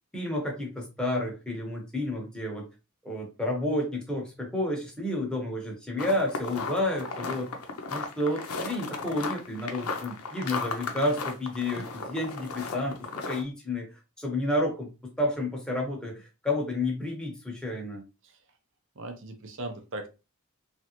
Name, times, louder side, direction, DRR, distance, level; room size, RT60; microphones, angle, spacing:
voice 1, 0.1-2.6 3.0-7.5 7.9-13.9 14.2-14.9 15.2-18.0, left 1 dB, 5° left, -1 dB, 0.8 m, -30 dB
sound 1, 6.0-13.4, left 4 dB, 85° left, 0.6 m, -35 dB
voice 2, 19.0-20.1, right 2 dB, 60° right, 5 dB, 0.6 m, -38 dB
3.2 x 2.5 x 2.8 m, 0.29 s
head